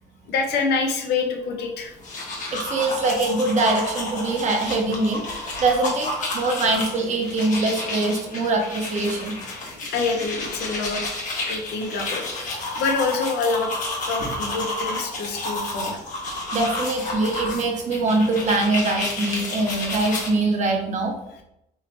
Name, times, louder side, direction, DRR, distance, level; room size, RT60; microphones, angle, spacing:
voice 1, 0.3-2.0 9.8-11.0 11.5-13.7 14.1-16.0, left 4 dB, 75° left, 3 dB, 0.8 m, -26 dB
sound 1, 1.9-20.3, left 2 dB, 50° left, 1.2 m, -31 dB
voice 2, 2.5-9.4 14.2-14.3 16.5-21.1, right 2 dB, 45° right, 2 dB, 0.9 m, -23 dB
3.7 x 2.9 x 3.0 m, 0.83 s
cardioid pair, 110°, 17 cm